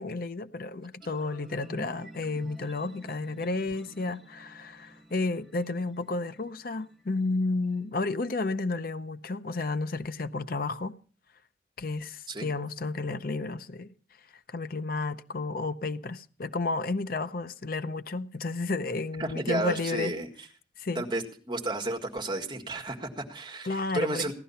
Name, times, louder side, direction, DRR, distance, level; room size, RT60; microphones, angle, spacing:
voice 1, 0.0-10.9 11.8-13.9 14.5-20.1 20.8-21.0 23.6-24.3, left 3 dB, 50° left, 0.6 m, -32 dB
sound 1, 1.0-8.1, equal, ahead, 1.5 m, -50 dB
voice 2, 19.2-20.5 21.0-24.3, right 2 dB, 25° right, 1.8 m, -32 dB
16.5 x 11.5 x 5.6 m
head